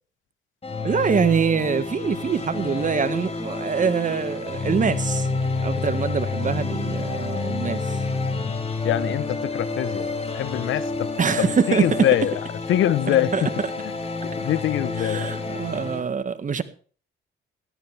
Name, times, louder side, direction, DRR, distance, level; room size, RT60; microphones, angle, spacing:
sound 1, 0.6-16.0, left 3 dB, 30° left, 4.8 m, -29 dB
voice 1, 0.8-5.3 5.6-7.8 11.2-11.8 13.3-13.4 15.0-16.6, right 6 dB, 40° right, 1.7 m, -24 dB
voice 2, 8.8-10.1 10.3-11.1 11.4-12.3 12.7-13.5 13.8-13.9 14.2-15.4, left 12 dB, 80° left, 1.0 m, -24 dB
17.5 x 14.0 x 3.4 m
cardioid pair, 90°, 20 cm